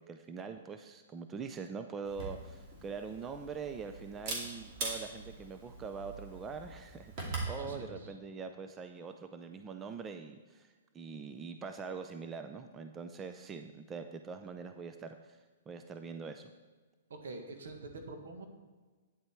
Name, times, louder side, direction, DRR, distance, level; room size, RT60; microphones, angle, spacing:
voice 1, 0.0-10.7 10.9-15.4 15.7-16.5, right 5 dB, 15° right, 7 dB, 0.5 m, -43 dB
Camera, 2.0-7.6, right 2 dB, 35° right, 2.4 m, -42 dB
voice 2, 7.5-8.2 17.2-18.5, right 3 dB, 80° right, 5 dB, 1.7 m, -45 dB
9.6 x 7.8 x 4.5 m, 1.3 s
hypercardioid pair, 155°, 0 cm